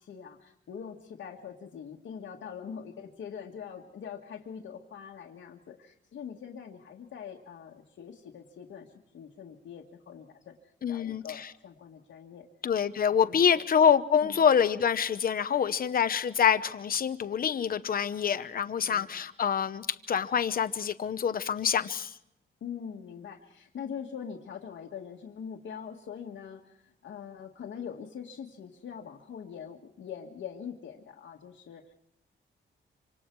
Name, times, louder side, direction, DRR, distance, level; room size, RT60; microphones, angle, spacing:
voice 1, 0.0-12.5 13.3-13.6 14.2-14.5 18.9-19.3 22.6-31.9, left 7 dB, 80° left, -1 dB, 1.9 m, -43 dB
voice 2, 10.8-11.2 12.6-22.1, left 8 dB, 45° left, 12 dB, 0.9 m, -26 dB
26.5 x 26.0 x 4.7 m, 0.76 s
wide cardioid pair, 170°, 20 cm